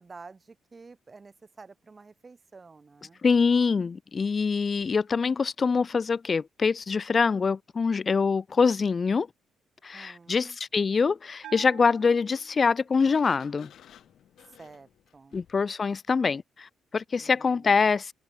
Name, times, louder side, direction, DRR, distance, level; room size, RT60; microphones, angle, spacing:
voice 1, 0.0-3.2 9.9-10.6 14.5-15.4 17.2-17.8, right 4 dB, 30° right, 3.7 m, -50 dB
voice 2, 3.2-9.3 9.8-13.7 15.3-18.1, left 5 dB, 35° left, 0.7 m, -24 dB
Bell, 11.4-13.1, right 12 dB, 80° right, 1.3 m, -48 dB
Sliding door, 12.9-15.7, left 10 dB, 70° left, 6.1 m, -54 dB
open air
cardioid pair, 90°, 0 cm